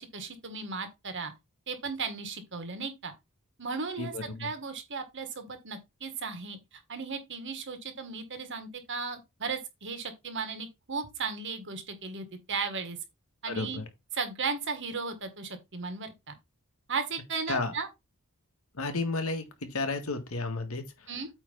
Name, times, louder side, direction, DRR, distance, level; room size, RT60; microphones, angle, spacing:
voice 1, 0.0-1.3 1.7-3.1 3.6-13.0 13.4-13.8 14.1-16.4 16.9-17.9 21.1-21.3, right 4 dB, 55° right, 1.8 m, -36 dB
voice 2, 4.0-4.5 13.5-13.8 17.5-17.7 18.7-21.1, left 3 dB, 70° left, 1.7 m, -33 dB
8.6 x 3.4 x 5.5 m
head